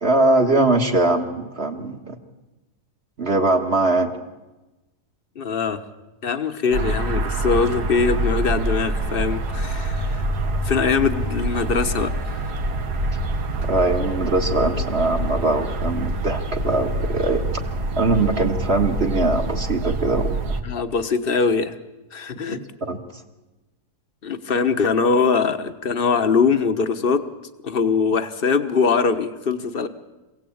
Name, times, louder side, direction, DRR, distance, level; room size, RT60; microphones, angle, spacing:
voice 1, 0.0-2.2 3.2-4.1 13.6-17.4 18.0-20.3 22.5-23.0, right 2 dB, 40° right, 3 dB, 1.9 m, -21 dB
voice 2, 5.3-5.8 6.2-10.2 10.6-12.4 20.6-21.8 22.1-22.6 24.2-27.3 27.6-29.9, left 5 dB, 40° left, 10 dB, 1.3 m, -22 dB
sound 1, 6.7-20.6, right 1 dB, 80° right, 2.1 m, -25 dB
26.0 x 17.5 x 8.7 m, 1.1 s
omnidirectional pair, 1.7 m